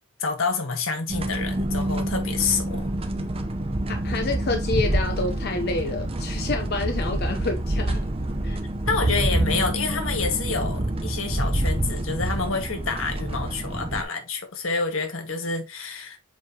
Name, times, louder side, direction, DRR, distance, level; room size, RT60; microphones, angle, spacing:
voice 1, 0.2-3.4 8.8-16.2, left 4 dB, 85° left, 1.6 m, -28 dB
sound 1, 1.1-14.0, right 1 dB, 30° right, 0.8 m, -27 dB
voice 2, 3.9-8.0 8.4-8.6, left 3 dB, 55° left, 0.8 m, -28 dB
7.4 x 4.4 x 2.9 m
head